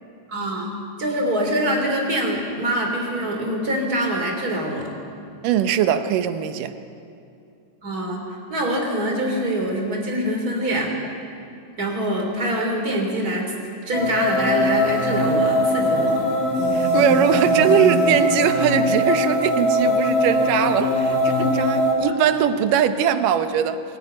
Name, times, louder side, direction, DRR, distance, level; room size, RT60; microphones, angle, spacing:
voice 1, 0.3-0.7 1.0-4.9 7.8-8.2 8.5-10.9 11.8-13.5 13.9-16.2, right 1 dB, 30° right, 1 dB, 3.6 m, -24 dB
voice 2, 5.4-6.7 16.7-20.9 21.3-23.8, right 9 dB, 85° right, 10 dB, 2.6 m, -21 dB
sound 1, 13.9-21.9, left 1 dB, 90° left, 4.7 m, -21 dB
23.0 x 13.5 x 9.9 m, 2.6 s
omnidirectional pair, 3.7 m